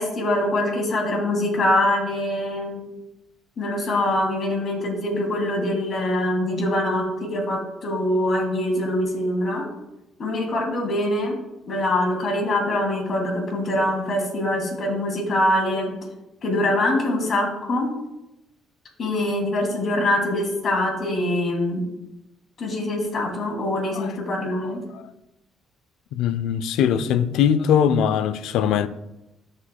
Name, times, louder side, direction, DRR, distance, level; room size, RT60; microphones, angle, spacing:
voice 1, 0.0-2.8 3.6-9.7 10.2-11.4 11.7-15.9 16.4-17.9 19.0-21.8 22.6-24.8, left 1 dB, 50° left, 2.7 m, -24 dB
voice 2, 24.6-25.0 26.1-28.9, left 8 dB, 75° left, 0.4 m, -21 dB
13.5 x 5.1 x 2.3 m
supercardioid pair, 60°, 0 cm